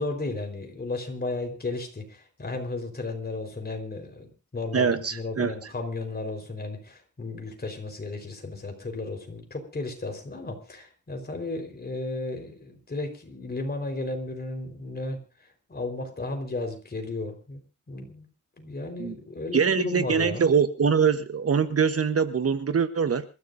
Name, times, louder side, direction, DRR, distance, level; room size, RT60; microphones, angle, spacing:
voice 1, 0.0-15.2 15.7-17.6 17.9-18.3 18.6-20.4, left 2 dB, 30° left, 4 dB, 4.4 m, -34 dB
voice 2, 4.7-5.5 19.0-19.1 19.5-23.2, right 6 dB, 50° right, 10 dB, 1.1 m, -23 dB
27.5 x 14.5 x 2.7 m, 0.31 s
wide cardioid pair, 130°, 30 cm